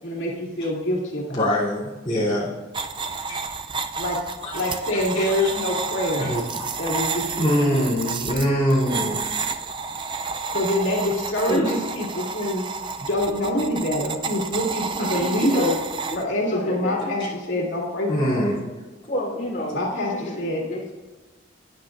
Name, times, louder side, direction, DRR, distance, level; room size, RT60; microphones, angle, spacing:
voice 1, 0.0-1.4 4.0-4.2 4.5-6.3 6.8-7.9 10.5-12.6 13.0-15.7 16.2-18.4 19.7-20.6, left 1 dB, 80° left, -3 dB, 2.6 m, -25 dB
voice 2, 1.3-2.5 3.3-3.4 4.4-4.6 5.1-5.5 6.2-6.6 7.4-9.2 18.1-18.7, equal, 25° left, -8 dB, 3.1 m, -23 dB
sound 1, 2.7-16.2, right 4 dB, 25° right, 0.4 m, -30 dB
voice 3, 15.0-15.8 16.1-17.1 17.5-17.7 19.1-19.8 20.1-20.8, left 1 dB, 40° left, -4 dB, 3.4 m, -29 dB
19.0 x 9.8 x 2.6 m, 1.2 s
head